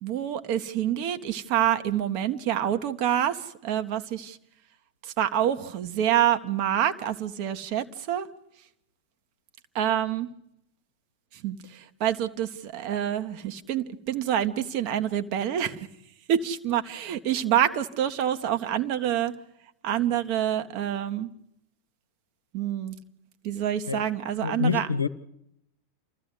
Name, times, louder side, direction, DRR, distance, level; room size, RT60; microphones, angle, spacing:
voice 1, 0.0-4.4 5.0-8.3 9.7-10.3 11.3-15.9 16.3-19.3 19.8-21.3 22.5-23.0 23.4-24.9, right 10 dB, 45° right, 1.3 m, -27 dB
voice 2, 24.4-25.1, left 5 dB, 85° left, 1.0 m, -26 dB
29.0 x 14.0 x 8.3 m
figure-of-eight pair, 90°, 0 cm